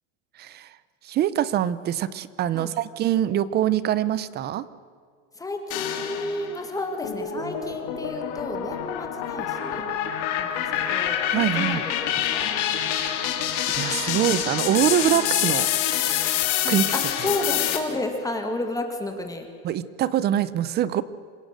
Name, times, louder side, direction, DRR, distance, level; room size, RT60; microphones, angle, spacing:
voice 1, 0.4-0.8 1.0-4.7 11.3-11.8 12.8-13.3 13.7-15.7 16.7-16.9 19.6-21.0, right 11 dB, 30° right, 17 dB, 0.6 m, -24 dB
voice 2, 5.4-9.8 10.4-12.4 14.1-14.2 16.6-19.5, left 2 dB, 10° left, 5 dB, 1.8 m, -32 dB
sound 1, 5.7-6.6 7.0-17.8, left 10 dB, 70° left, 2.9 m, -26 dB
26.5 x 16.5 x 6.6 m, 2.2 s
cardioid pair, 165°, 36 cm